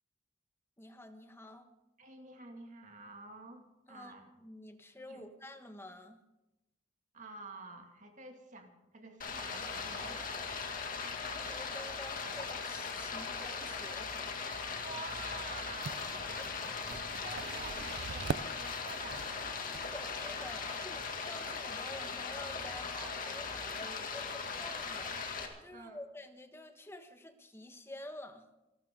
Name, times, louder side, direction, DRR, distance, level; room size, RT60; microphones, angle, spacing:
voice 1, 0.8-1.7 3.9-6.2 10.2-10.8 11.2-14.5 16.4-16.7 19.7-25.3 25.6-28.4, left 1 dB, 15° left, 7 dB, 1.3 m, -50 dB
voice 2, 2.0-4.3 5.1-5.3 7.1-10.2 14.8-16.5 17.1-19.3 23.0-23.1 25.7-26.0, right 3 dB, 45° right, 4 dB, 2.3 m, -49 dB
Stream, 9.2-25.5, left 5 dB, 50° left, 2.2 m, -39 dB
sound 1, 15.8-20.8, right 5 dB, 60° right, 0.5 m, -43 dB
28.0 x 12.5 x 3.8 m, 0.98 s
head